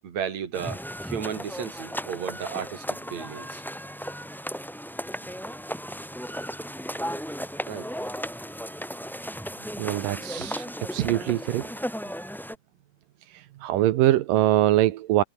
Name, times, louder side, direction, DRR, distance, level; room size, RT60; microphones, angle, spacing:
voice 1, 0.0-3.6 7.3-7.9, right 8 dB, 55° right, 3.8 m, -34 dB
sound 1, 0.5-12.5, equal, ahead, 4.4 m, -35 dB
voice 2, 9.8-11.7 13.3-15.2, right 15 dB, 85° right, 2.7 m, -23 dB
omnidirectional pair, 3.8 m